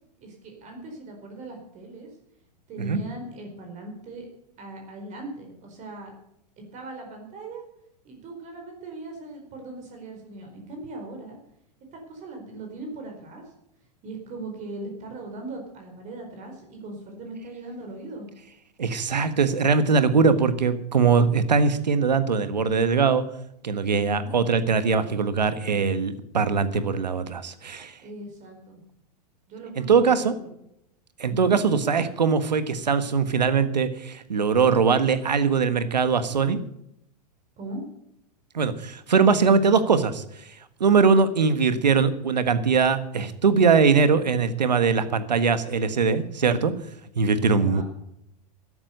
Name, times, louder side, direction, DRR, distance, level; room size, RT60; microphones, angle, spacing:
voice 1, 0.2-2.1 2.7-4.3 4.6-6.1 6.6-7.6 8.0-11.4 11.9-13.4 14.0-18.3 23.9-24.3 28.0-28.8 29.5-30.5 31.3-31.5 37.6-37.8 47.5-47.8, right 2 dB, 35° right, 3 dB, 4.5 m, -39 dB
voice 2, 18.8-23.2 23.6-28.0 29.8-30.3 31.2-36.6 38.5-40.2 40.8-46.7 47.1-47.8, right 5 dB, 90° right, 12 dB, 1.4 m, -21 dB
13.0 x 11.5 x 6.6 m, 0.77 s
hypercardioid pair, 105°, 21 cm